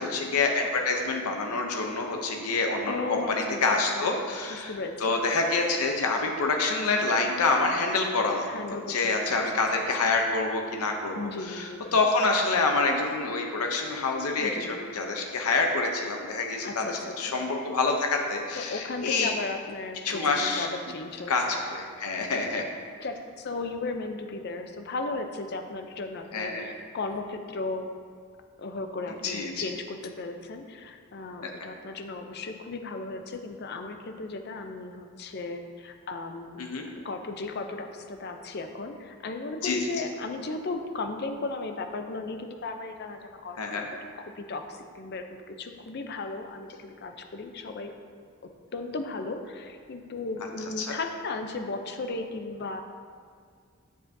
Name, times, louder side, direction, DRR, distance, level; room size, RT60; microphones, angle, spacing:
voice 1, 0.0-4.7 5.0-19.3 20.0-20.7 21.3-22.6 26.3-26.7 29.2-29.6 31.4-31.5 36.6-36.9 39.6-39.8 43.6-43.9 50.8-51.0, left 3 dB, 85° left, 2 dB, 0.6 m, -27 dB
voice 2, 2.9-4.1 4.5-5.2 8.4-10.1 11.1-11.8 14.4-14.7 16.6-17.4 18.6-21.3 22.4-22.7 23.0-27.9 28.6-36.6 37.0-43.7 44.2-47.9 48.7-52.8, left 3 dB, 45° left, 6 dB, 0.5 m, -36 dB
7.2 x 7.2 x 2.6 m, 2.1 s
head